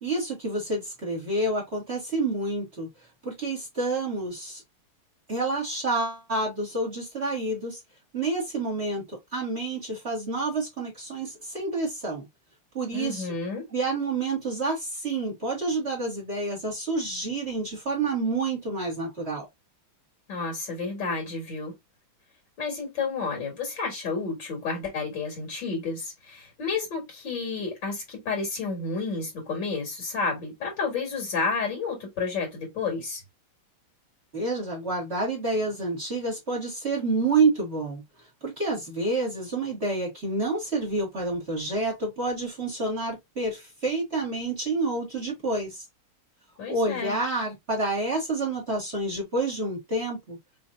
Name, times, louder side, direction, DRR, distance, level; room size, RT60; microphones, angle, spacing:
voice 1, 0.0-2.9 3.2-4.6 5.3-7.8 8.1-9.0 9.3-12.3 12.7-13.3 13.7-19.5 34.3-38.0 38.4-45.9 46.7-50.4, right 3 dB, 30° right, 2.1 m, -28 dB
voice 2, 12.9-13.6 20.3-21.7 22.6-33.2 46.6-47.2, left 4 dB, 60° left, 2.7 m, -31 dB
5.4 x 3.1 x 2.5 m
omnidirectional pair, 2.3 m